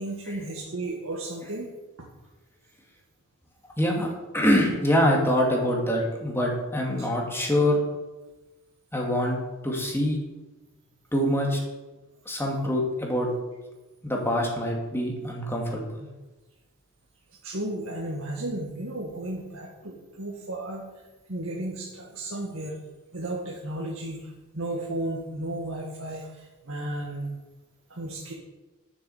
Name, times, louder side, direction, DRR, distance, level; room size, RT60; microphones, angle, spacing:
voice 1, 0.0-1.7 7.0-7.1 17.4-21.0 21.3-22.8 23.1-27.3 27.9-28.3, right 1 dB, 65° right, -2 dB, 1.9 m, -34 dB
voice 2, 3.8-7.8 8.9-9.4 9.6-10.2 11.1-11.6 12.3-13.3 14.0-15.8, equal, 10° left, 0 dB, 2.2 m, -24 dB
11.5 x 7.1 x 7.1 m, 1.1 s
head